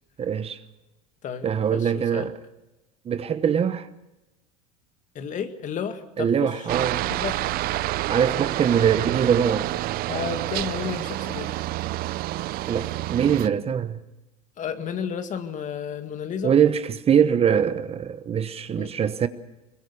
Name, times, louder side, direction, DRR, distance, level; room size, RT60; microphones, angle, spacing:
voice 1, 0.2-0.6 1.4-2.3 3.1-3.9 6.2-7.0 8.1-9.7 12.7-14.0 16.4-19.3, right 8 dB, 30° right, 1.0 m, -22 dB
voice 2, 1.2-2.3 5.1-6.7 7.0-7.4 10.1-11.6 14.6-16.5 18.8-18.9, left 7 dB, 40° left, 2.0 m, -32 dB
Aircraft, 6.7-13.5, right 16 dB, 50° right, 0.7 m, -28 dB
22.0 x 21.0 x 6.9 m
supercardioid pair, 95°, 19 cm